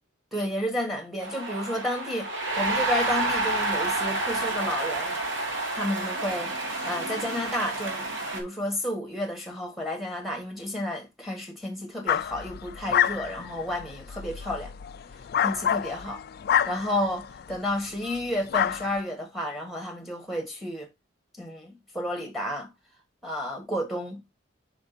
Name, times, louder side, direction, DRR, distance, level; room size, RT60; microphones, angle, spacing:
voice 1, 0.3-5.2 5.7-8.1 8.3-14.7 15.4-16.2 16.7-20.9 21.4-22.7 23.2-24.2, left 1 dB, ahead, 1.7 m, -31 dB
sound 1, 1.2-8.4, right 2 dB, 75° right, 2.0 m, -29 dB
sound 2, 12.1-17.6 18.0-18.2 18.5-19.0, left 9 dB, 55° left, 0.3 m, -28 dB
5.2 x 5.1 x 3.9 m
head